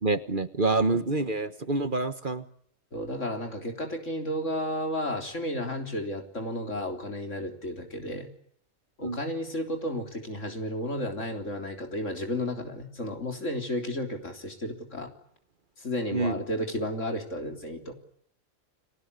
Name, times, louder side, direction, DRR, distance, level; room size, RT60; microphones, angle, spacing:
voice 1, 0.0-2.4 9.0-9.2 16.1-16.4, right 3 dB, 40° right, 11 dB, 1.4 m, -27 dB
voice 2, 2.9-8.3 9.0-15.1 15.8-17.9, left 1 dB, 65° left, 4 dB, 4.0 m, -32 dB
30.0 x 20.5 x 8.2 m, 0.68 s
omnidirectional pair, 1.4 m